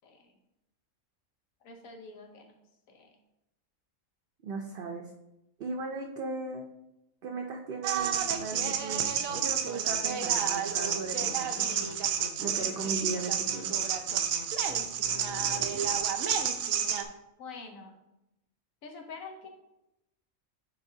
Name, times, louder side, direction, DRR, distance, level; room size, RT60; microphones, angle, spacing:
voice 1, 1.6-2.5 2.9-3.1 17.4-18.0 18.8-19.5, left 4 dB, 85° left, 3 dB, 1.3 m, -46 dB
voice 2, 4.4-5.1 5.6-6.7 7.2-11.7 12.4-13.7, right 3 dB, 55° right, 2 dB, 0.7 m, -37 dB
sound 1, 7.8-17.0, right 8 dB, 90° right, 1.0 m, -30 dB
sound 2, 8.0-15.6, left 4 dB, 50° left, 0.6 m, -47 dB
sound 3, 14.2-16.0, left 1 dB, 65° left, 1.3 m, -51 dB
9.6 x 3.9 x 2.7 m, 0.90 s
omnidirectional pair, 1.4 m